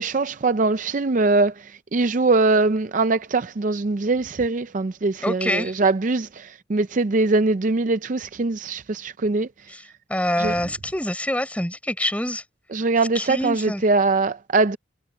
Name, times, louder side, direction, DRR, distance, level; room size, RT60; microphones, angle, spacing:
voice 1, 0.0-1.5 1.9-9.5 10.4-10.5 12.7-14.8, right 3 dB, 45° right, 0.5 m, -22 dB
voice 2, 5.2-5.7 9.7-9.8 10.1-12.4 13.1-13.8, left 1 dB, 5° left, 5.4 m, -25 dB
head